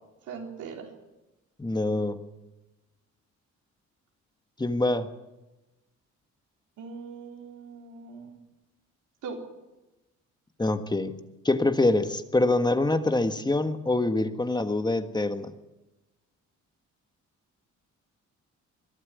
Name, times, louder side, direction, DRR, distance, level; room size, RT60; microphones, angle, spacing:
voice 1, 0.3-0.9 6.8-8.4 9.2-9.4, right 5 dB, 85° right, 1 dB, 4.1 m, -40 dB
voice 2, 1.6-2.2 4.6-5.1 10.6-11.2 11.4-15.5, left 2 dB, 15° left, 9 dB, 1.5 m, -25 dB
22.5 x 12.0 x 9.5 m, 1.1 s
cardioid pair, 90°, 30 cm